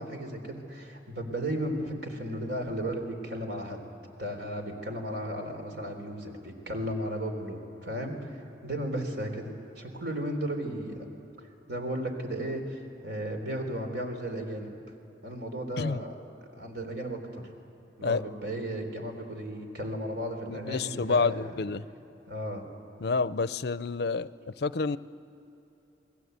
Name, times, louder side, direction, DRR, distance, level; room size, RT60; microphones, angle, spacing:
voice 1, 0.0-3.9 4.2-11.1 11.4-14.7 15.2-16.1 16.5-17.4 18.0-21.5 22.3-22.7, equal, 70° right, 4 dB, 3.9 m, -35 dB
voice 2, 20.5-21.8 23.0-25.0, left 4 dB, 60° left, 15 dB, 0.6 m, -29 dB
29.5 x 21.0 x 8.1 m, 3.0 s
head